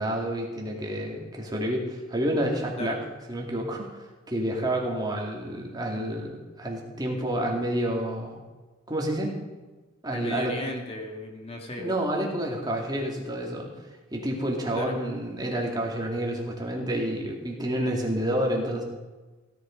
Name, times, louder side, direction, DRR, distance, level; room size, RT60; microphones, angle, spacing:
voice 1, 0.0-3.0 3.3-6.3 6.6-8.4 8.9-9.4 10.0-10.6 11.8-13.7 14.1-18.8, right 1 dB, 20° right, -1 dB, 2.5 m, -29 dB
voice 2, 10.1-11.9 14.7-15.0, left 1 dB, 30° left, 1 dB, 2.1 m, -35 dB
16.5 x 10.5 x 5.3 m, 1.2 s
head